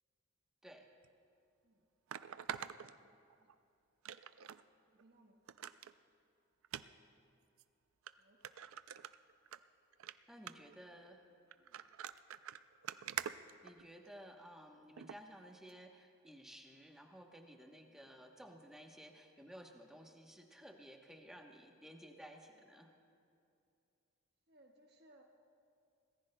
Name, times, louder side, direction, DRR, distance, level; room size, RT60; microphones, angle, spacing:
sound 1, 1.0-1.1 2.1-3.5 4.0-4.6 5.0-5.1 5.5-5.9 6.6-6.8 7.6-7.7 8.1-8.2 8.4-9.6 9.9-10.1 10.5-10.8 11.5-14.2 15.0-15.2 15.7-15.8, right 9 dB, 85° right, 0.4 m, -45 dB
voice 1, 3.0-3.5 4.9-5.4 8.2-8.4 11.6-11.8 21.7-21.8 24.5-25.2, right 1 dB, 50° right, 1 dB, 1.2 m, -67 dB
voice 2, 10.3-11.2 13.6-22.9, equal, ahead, 2 dB, 0.9 m, -55 dB
25.5 x 18.5 x 2.2 m, 2.6 s
head